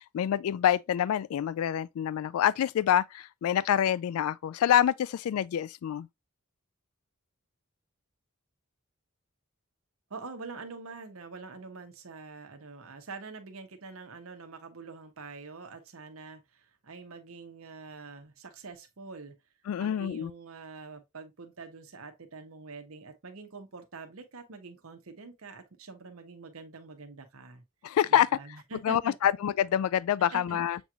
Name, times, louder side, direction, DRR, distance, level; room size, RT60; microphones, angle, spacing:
voice 1, 0.1-6.1 19.7-20.3 27.8-28.3 28.8-30.8, left 10 dB, 80° left, 0.3 m, -26 dB
voice 2, 10.1-19.3 19.8-27.6 28.1-29.1 30.3-30.6, right 4 dB, 75° right, 1.0 m, -45 dB
7.0 x 3.0 x 2.3 m
head